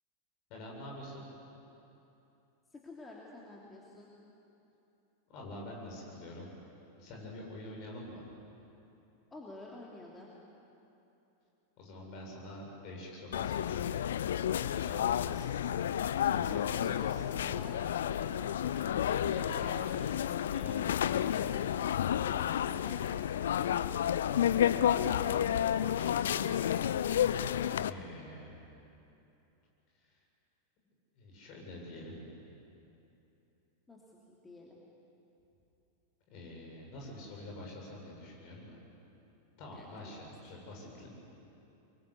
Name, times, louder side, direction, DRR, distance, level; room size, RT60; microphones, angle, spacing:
voice 1, 0.5-1.3 5.3-6.5 7.0-8.2 11.8-13.9 14.5-15.6 16.2-17.2 19.1-20.2 20.5-21.5 25.1-26.7 27.8-28.6 30.0-30.1 31.2-32.3 36.3-38.8 39.6-41.1, left 1 dB, 40° left, -1 dB, 7.6 m, -47 dB
voice 2, 2.7-4.1 9.3-10.3 16.5-17.8 18.2-20.1 22.1-23.3 33.9-34.0 34.3-34.8 39.7-40.2, left 2 dB, 15° left, -3 dB, 3.0 m, -50 dB
sound 1, 13.3-27.9, left 10 dB, 60° left, 0.6 m, -31 dB
25.0 x 23.0 x 8.4 m, 2.9 s
figure-of-eight pair, 90°, 0 cm